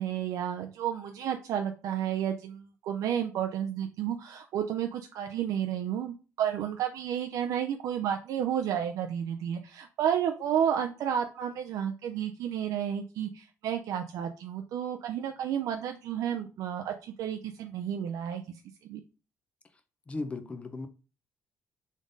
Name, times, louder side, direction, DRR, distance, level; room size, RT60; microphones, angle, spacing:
voice 1, 0.0-19.0, right 9 dB, 75° right, 0.5 m, -31 dB
voice 2, 20.1-20.9, left 3 dB, 20° left, 0.6 m, -36 dB
3.7 x 3.6 x 3.9 m
cardioid pair, 135°, 6 cm